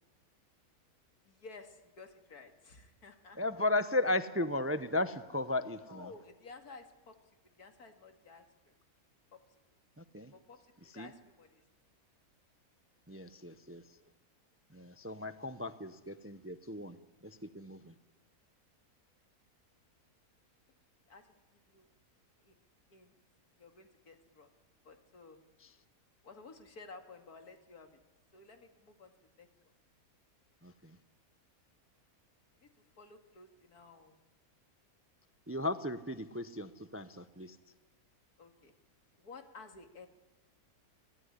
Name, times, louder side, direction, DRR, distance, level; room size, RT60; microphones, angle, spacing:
voice 1, 1.2-3.4 5.8-7.2 7.6-8.8 9.3-9.4 10.3-11.6 21.1-21.9 22.4-22.5 22.9-23.1 23.6-24.5 24.8-25.4 26.2-28.0 28.3-29.7 32.5-32.7 33.0-34.2 38.4-38.7 39.2-40.1, left 4 dB, 85° left, 5 dB, 2.7 m, -54 dB
voice 2, 3.4-6.1 10.0-10.3 10.9-11.1 13.1-13.8 14.7-17.0 17.2-17.9 25.6-25.7 30.6-31.0 35.5-37.6, left 2 dB, 15° right, 11 dB, 0.5 m, -35 dB
24.0 x 17.5 x 9.9 m, 1.2 s
omnidirectional pair, 1.6 m